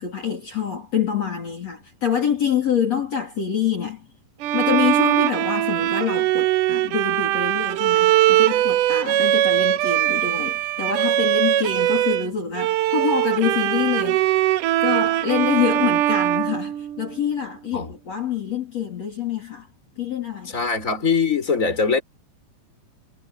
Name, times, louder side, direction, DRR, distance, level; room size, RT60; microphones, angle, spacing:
voice 1, 0.0-4.1 4.5-14.2 14.8-19.7 20.0-20.6, left 7 dB, 45° left, 4.6 m, -26 dB
Bowed string instrument, 4.4-12.3 12.6-17.3, right 13 dB, 70° right, 2.2 m, -21 dB
voice 2, 20.5-22.0, left 5 dB, 20° left, 5.1 m, -21 dB
omnidirectional pair, 4.1 m